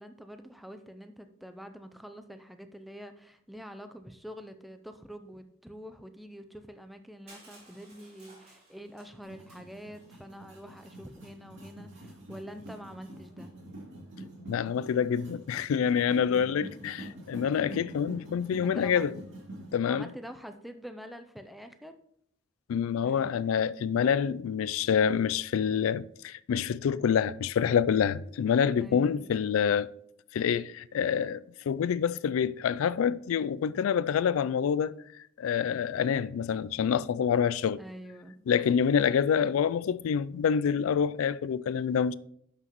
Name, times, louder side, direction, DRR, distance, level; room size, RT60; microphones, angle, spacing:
voice 1, 0.0-13.5 18.6-19.0 19.9-21.9 23.0-23.3 28.8-29.3 37.8-38.4, equal, ahead, 0.4 m, -46 dB
Crushing, 7.3-10.2, right 2 dB, 35° right, 3.7 m, -57 dB
Marrakesh Ambient loop, 9.2-19.7, right 1 dB, 60° right, 2.7 m, -46 dB
voice 2, 14.5-19.1 19.7-20.1 22.7-29.9 30.3-35.0 35.4-37.8 38.5-42.1, left 7 dB, 90° left, 0.3 m, -27 dB
11.0 x 5.9 x 3.0 m
head